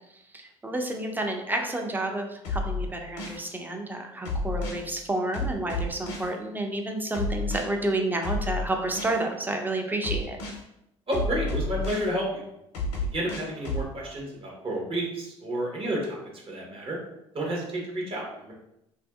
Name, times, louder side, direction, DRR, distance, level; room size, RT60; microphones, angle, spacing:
voice 1, 0.3-10.4, right 2 dB, 10° right, 3 dB, 0.5 m, -30 dB
sound 1, 2.4-3.4 4.2-4.8 5.3-6.3 7.1-7.6 8.2-9.2 10.0-10.6 11.1-12.1 12.7-13.9, left 2 dB, 75° left, 0.6 m, -30 dB
voice 2, 11.1-12.4 13.1-16.2 16.5-17.0 17.3-18.5, right 1 dB, 40° right, -2 dB, 1.1 m, -30 dB
2.7 x 2.6 x 2.3 m, 0.84 s
hypercardioid pair, 60°, 15 cm